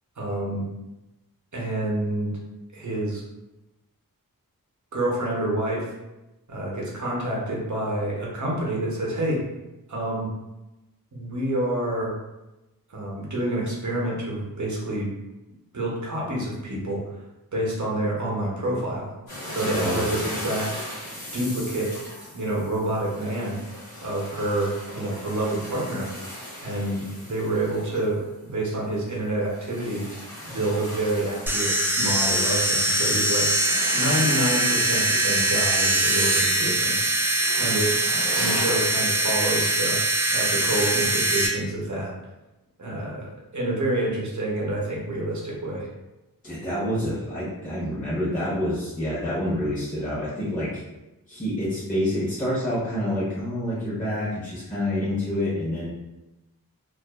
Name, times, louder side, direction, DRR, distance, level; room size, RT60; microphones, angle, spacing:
voice 1, 0.2-0.7 1.5-2.3 2.7-3.2 4.9-5.9 6.5-9.4 9.9-10.3 11.1-12.2 12.9-15.1 15.7-17.1 17.5-19.1 19.5-20.8 21.3-21.9 22.3-23.6 24.0-26.1 26.6-28.2 28.5-30.0 30.4-33.5 33.9-37.2 37.6-37.9 38.3-42.1 42.8-45.9, right 1 dB, 55° right, -4 dB, 0.7 m, -28 dB
sound 1, 19.3-28.5 28.9-38.7, equal, 80° left, 1.0 m, -38 dB
voice 2, 19.7-20.1 46.4-50.8 51.3-55.9, left 1 dB, 20° left, -9 dB, 0.8 m, -27 dB
sound 2, 31.5-41.5, right 1 dB, 5° right, 0.3 m, -22 dB
2.4 x 2.3 x 2.3 m, 1.0 s
wide cardioid pair, 60°, 36 cm